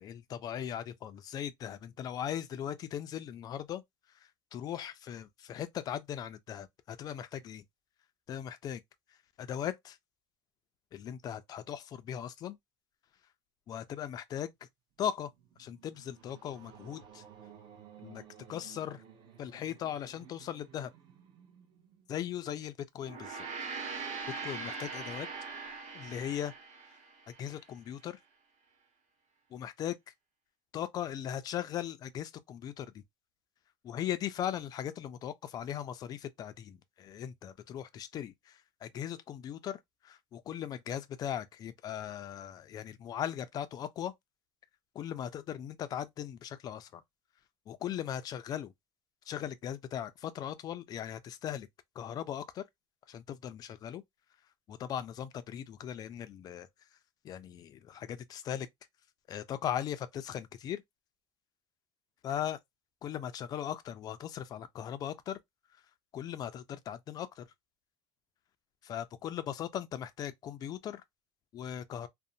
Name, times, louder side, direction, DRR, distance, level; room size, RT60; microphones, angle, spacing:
voice 1, 0.0-3.8 4.5-7.6 8.3-8.8 9.4-10.0 10.9-12.6 13.7-14.5 15.0-15.3 15.6-17.2 18.0-18.2 18.5-19.0 19.4-20.9 22.1-23.5 23.8-24.0 24.4-25.3 25.9-26.5 27.4-28.2 29.5-30.0 30.7-33.0 33.8-44.1 44.9-47.0 47.7-48.7 49.3-51.7 52.0-52.6 53.1-54.0 54.7-56.7 57.2-58.7 59.3-60.8 62.2-62.6 63.0-65.4 66.1-67.5 68.8-71.0 71.5-72.1, left 10 dB, 35° left, 0.3 m, -38 dB
sound 1, 15.0-22.3, right 9 dB, 45° right, 0.7 m, -56 dB
Gong, 23.0-27.6, right 4 dB, 60° right, 1.2 m, -41 dB
2.5 x 2.0 x 2.6 m
cardioid pair, 145°, 12 cm